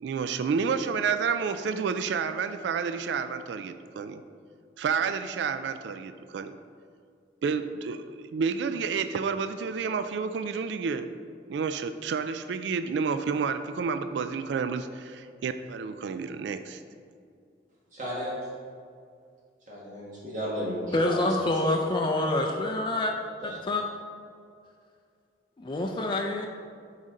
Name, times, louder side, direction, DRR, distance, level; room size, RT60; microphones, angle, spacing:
voice 1, 0.0-4.2 4.8-6.6 7.4-11.1 11.5-16.8, right 5 dB, 75° right, 10 dB, 0.3 m, -30 dB
voice 2, 17.9-18.4 19.7-22.1 23.4-23.6, equal, 45° right, -5 dB, 1.5 m, -34 dB
voice 3, 20.9-23.1 23.4-23.8 25.6-26.5, left 2 dB, 25° left, 1 dB, 0.4 m, -27 dB
8.1 x 5.0 x 3.8 m, 2.2 s
head